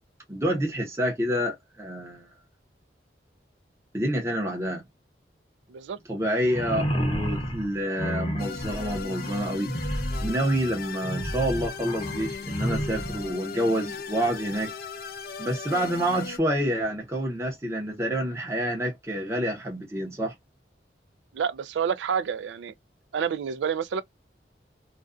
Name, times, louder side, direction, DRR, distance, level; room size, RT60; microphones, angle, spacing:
voice 1, 0.3-2.3 3.9-4.8 6.1-9.7 10.2-14.7 15.4-20.3, equal, 15° right, 0.7 m, -28 dB
sound 1, 6.4-13.2, equal, 30° left, 0.7 m, -31 dB
sound 2, 8.4-16.4, left 6 dB, 55° left, 0.4 m, -38 dB
voice 2, 21.3-22.7 23.1-24.0, right 7 dB, 90° right, 0.3 m, -28 dB
2.4 x 2.2 x 2.3 m
head